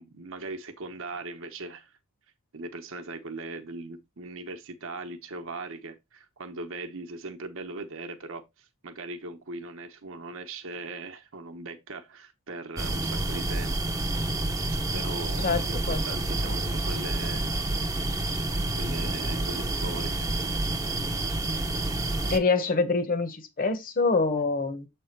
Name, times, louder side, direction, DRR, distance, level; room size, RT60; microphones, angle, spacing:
voice 1, 0.0-1.9 2.5-13.8 14.9-17.5 18.7-20.3, right 2 dB, 65° right, 0.9 m, -39 dB
sound 1, 12.8-22.4, right 2 dB, 15° right, 0.7 m, -29 dB
voice 2, 22.3-24.9, left 4 dB, 40° left, 1.1 m, -25 dB
7.5 x 3.4 x 4.4 m
head